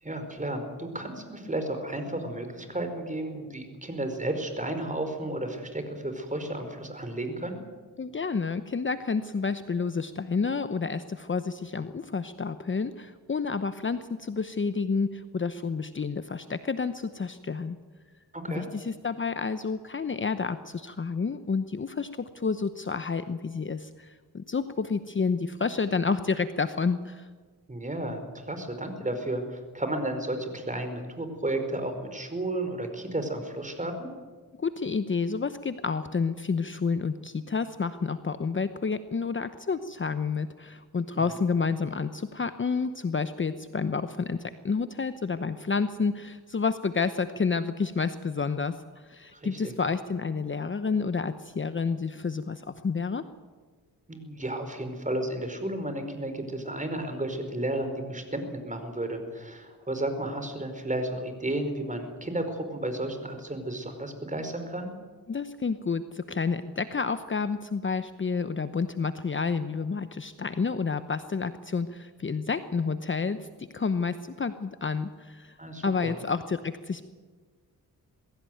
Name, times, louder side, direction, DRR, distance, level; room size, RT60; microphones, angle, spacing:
voice 1, 0.0-7.6 18.3-18.7 27.7-34.1 49.3-49.7 54.1-64.9 75.6-76.1, right 1 dB, 20° right, 7 dB, 4.9 m, -33 dB
voice 2, 8.0-17.8 18.5-27.3 34.6-53.2 65.3-75.6 75.8-77.0, left 5 dB, 30° left, 11 dB, 1.0 m, -30 dB
21.5 x 16.0 x 9.3 m, 1.4 s
cardioid pair, 65°, 38 cm